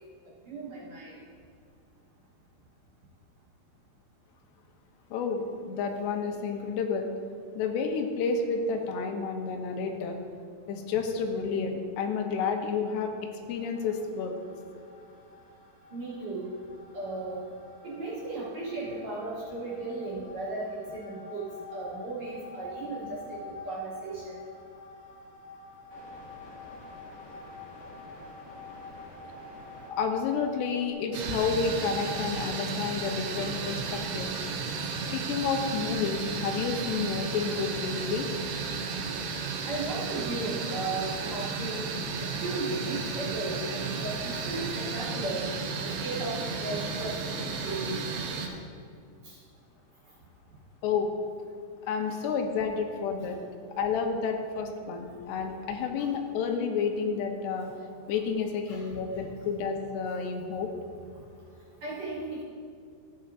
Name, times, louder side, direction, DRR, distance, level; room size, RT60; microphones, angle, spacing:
voice 1, 0.5-1.2 15.9-16.5 16.9-17.4 17.8-21.4 21.7-24.4 39.7-41.9 42.2-45.5 45.8-48.1 49.2-49.4 52.1-52.2 56.0-56.1 58.7-59.0 60.0-60.1 61.8-62.4, right 2 dB, 50° right, -7 dB, 2.7 m, -36 dB
voice 2, 5.1-7.1 7.6-10.2 10.7-13.1 13.5-14.3 30.0-34.4 35.1-38.3 50.8-51.1 51.8-53.4 53.8-57.7 58.1-60.7, left 5 dB, 90° left, 4 dB, 2.8 m, -30 dB
sound 1, 13.5-30.9, left 3 dB, 55° left, 1.7 m, -47 dB
sound 2, 31.1-48.5, right 4 dB, 80° right, 2.7 m, -33 dB
13.5 x 8.5 x 2.5 m, 2.3 s
omnidirectional pair, 4.8 m